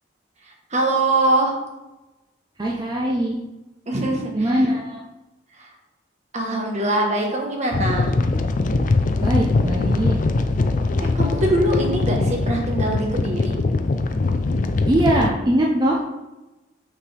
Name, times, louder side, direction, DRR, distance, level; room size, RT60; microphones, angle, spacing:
voice 1, 0.4-1.6 3.9-4.6 5.5-5.7 6.3-8.1 11.0-13.5, right 1 dB, 40° right, 0 dB, 1.2 m, -23 dB
voice 2, 2.6-3.4 4.3-5.0 9.2-10.2 14.9-16.0, right 1 dB, 25° right, -3 dB, 0.6 m, -21 dB
sound 1, 7.7-15.3, left 3 dB, 45° left, 0.4 m, -21 dB
6.0 x 4.7 x 3.4 m, 1.0 s
head